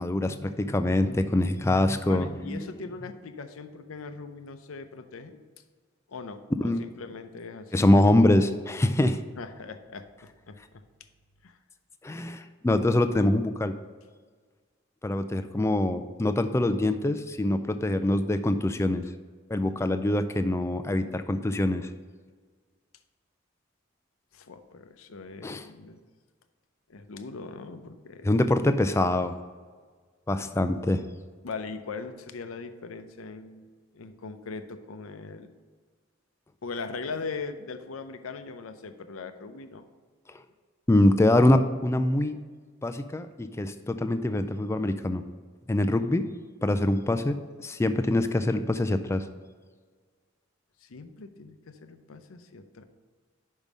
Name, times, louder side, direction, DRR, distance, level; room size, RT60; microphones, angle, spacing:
voice 1, 0.0-2.6 6.6-6.8 7.7-9.2 12.0-13.7 15.0-19.0 19.5-21.9 25.4-25.6 28.2-29.3 30.3-31.0 40.9-42.4 42.8-45.2 45.7-46.2 46.6-49.2, left 1 dB, 15° left, 9 dB, 0.3 m, -24 dB
voice 2, 2.1-5.4 6.1-7.9 9.4-10.6 11.4-11.6 24.3-26.0 26.9-28.3 31.4-35.5 36.6-39.8 50.8-52.8, left 4 dB, 85° left, 9 dB, 0.6 m, -40 dB
5.4 x 5.3 x 6.1 m, 1.5 s
head